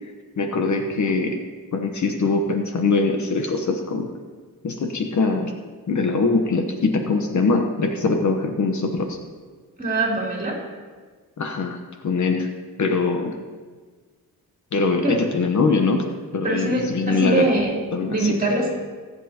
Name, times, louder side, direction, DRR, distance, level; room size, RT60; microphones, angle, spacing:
voice 1, 0.4-1.4 1.7-4.1 4.6-5.5 5.9-9.2 11.4-11.8 12.0-12.5 12.8-13.3 14.7-16.0 16.3-17.5 17.9-18.4, left 4 dB, 55° left, 5 dB, 1.0 m, -22 dB
voice 2, 9.8-10.6 15.0-15.2 16.4-17.8 18.1-18.7, right 2 dB, 25° right, -2 dB, 3.1 m, -23 dB
22.5 x 8.1 x 2.9 m, 1.5 s
wide cardioid pair, 125°, 36 cm